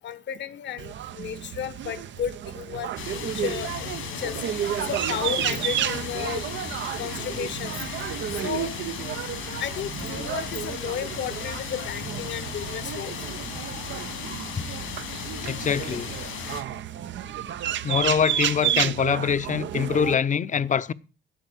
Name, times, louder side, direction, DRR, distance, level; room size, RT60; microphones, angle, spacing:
voice 1, 0.0-6.4 7.0-7.8 8.3-8.8 9.6-13.1, left 9 dB, 65° left, 1.2 m, -33 dB
sound 1, 0.8-20.1, right 11 dB, 70° right, 0.8 m, -32 dB
sound 2, 3.0-16.6, left 7 dB, 85° left, 3.1 m, -36 dB
voice 2, 15.4-16.1 17.8-20.9, left 7 dB, 40° left, 0.8 m, -24 dB
11.5 x 7.9 x 7.9 m
cardioid pair, 90°, 20 cm